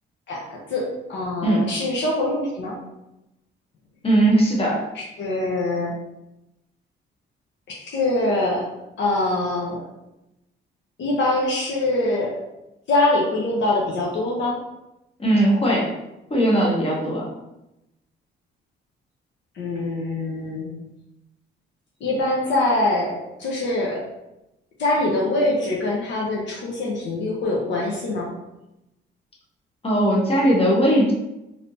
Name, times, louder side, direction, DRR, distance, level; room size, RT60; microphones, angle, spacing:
voice 1, 0.7-2.8 4.9-6.0 7.7-8.6 9.0-9.8 11.0-12.3 12.9-14.6 19.6-20.7 22.0-23.1 23.4-24.0 24.8-28.3, left 2 dB, 65° left, -3 dB, 0.8 m, -23 dB
voice 2, 1.4-1.7 4.0-4.9 15.2-15.9 16.3-17.3 29.8-31.1, right 1 dB, 30° left, -3 dB, 1.1 m, -19 dB
3.2 x 2.9 x 2.6 m, 0.92 s
cardioid pair, 90°, 20 cm